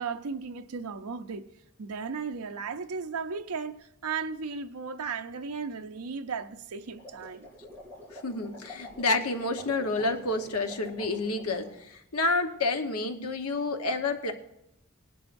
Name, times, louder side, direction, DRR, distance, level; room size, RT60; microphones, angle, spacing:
voice 1, 0.0-1.5 1.8-7.5, right 5 dB, 90° right, 0.6 m, -35 dB
sound 1, 6.8-11.8, left 1 dB, 10° left, 4.3 m, -46 dB
voice 2, 8.2-14.3, left 3 dB, 80° left, 1.1 m, -29 dB
18.5 x 11.5 x 2.6 m
head